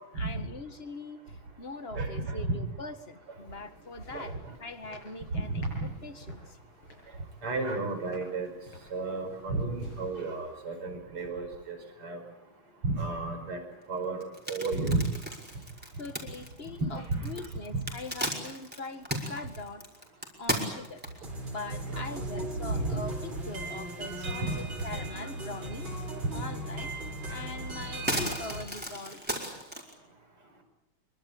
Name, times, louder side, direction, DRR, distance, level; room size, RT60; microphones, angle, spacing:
voice 1, 0.2-6.6 16.0-19.9 20.4-21.1 21.4-25.9 26.3-26.9 27.3-29.2, left 3 dB, 30° left, 9 dB, 1.9 m, -42 dB
voice 2, 2.0-2.4 4.1-4.3 5.3-5.8 7.4-8.5 8.9-11.8 12.0-12.2 12.8-13.6 13.9-15.1 17.0-17.3 17.7-17.8 21.9-22.1 22.7-23.0 24.4-24.6, right 3 dB, 90° right, 6 dB, 6.0 m, -32 dB
sound 1, 3.1-10.9, left 1 dB, 75° left, 8.4 m, -54 dB
sound 2, 14.2-21.4 22.0-22.1 22.5-22.6 22.9-23.8 24.1-25.1 25.5-25.6 26.9-27.0 27.4-29.9, equal, 5° right, 5.0 m, -36 dB
sound 3, 21.2-28.6, right 1 dB, 65° right, 5.8 m, -38 dB
25.0 x 24.0 x 8.6 m, 0.87 s
omnidirectional pair, 2.4 m